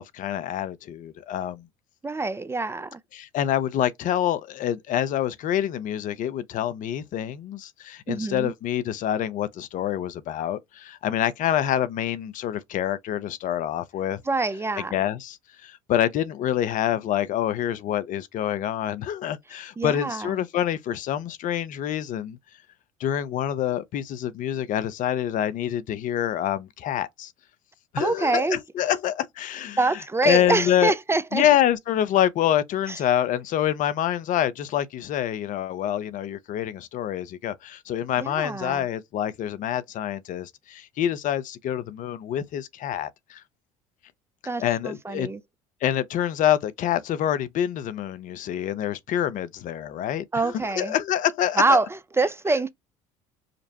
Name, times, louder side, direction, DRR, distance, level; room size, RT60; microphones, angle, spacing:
voice 1, 0.0-1.6 3.1-14.2 14.9-22.4 23.0-27.3 27.9-29.8 30.2-30.9 31.3-43.4 44.6-45.3 45.8-51.8, left 11 dB, 55° left, 0.6 m, -26 dB
voice 2, 2.0-3.0 8.1-8.5 14.3-14.9 19.8-20.3 28.0-28.6 29.8-31.5 32.9-33.0 38.2-38.9 44.5-45.4 50.3-51.0 51.6-52.7, right 3 dB, 15° right, 0.4 m, -25 dB
5.1 x 2.0 x 2.8 m
hypercardioid pair, 70°, 16 cm